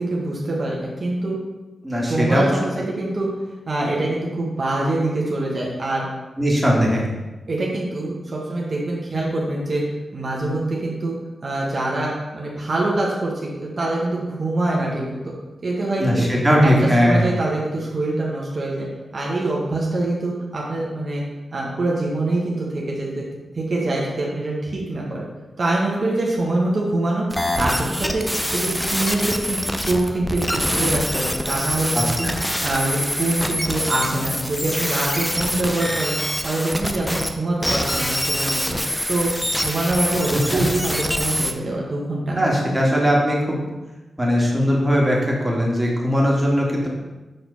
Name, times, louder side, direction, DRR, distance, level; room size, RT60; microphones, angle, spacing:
voice 1, 0.0-1.4 2.0-3.3 3.7-6.1 7.5-9.8 10.1-11.2 11.4-15.3 15.6-16.3 16.6-18.9 19.1-21.2 21.5-23.3 23.5-25.3 25.6-32.3 32.6-36.2 36.4-38.7 39.1-42.4, right 2 dB, 55° right, -4 dB, 1.4 m, -24 dB
voice 2, 1.8-2.5 6.4-7.0 16.0-17.2 31.9-32.3 40.5-40.6 42.3-43.6 44.2-46.9, equal, 10° right, -4 dB, 2.2 m, -19 dB
sound 1, 27.3-37.3 37.6-41.5, equal, 10° left, 0.7 m, -25 dB
6.6 x 4.2 x 4.1 m, 1.1 s
supercardioid pair, 40°, 0 cm